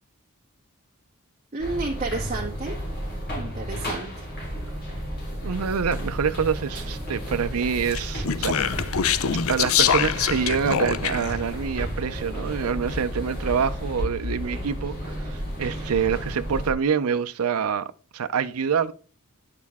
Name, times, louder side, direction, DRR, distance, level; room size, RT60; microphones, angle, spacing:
voice 1, 1.5-2.7 3.4-4.3, right 3 dB, 35° right, 1.6 m, -31 dB
sound 1, 1.6-16.7, equal, 45° left, 3.9 m, -32 dB
voice 2, 5.4-9.0 9.5-18.9, right 6 dB, 85° right, 0.5 m, -26 dB
Speech, 7.9-11.4, left 8 dB, 70° left, 0.5 m, -24 dB
9.4 x 6.7 x 3.5 m
head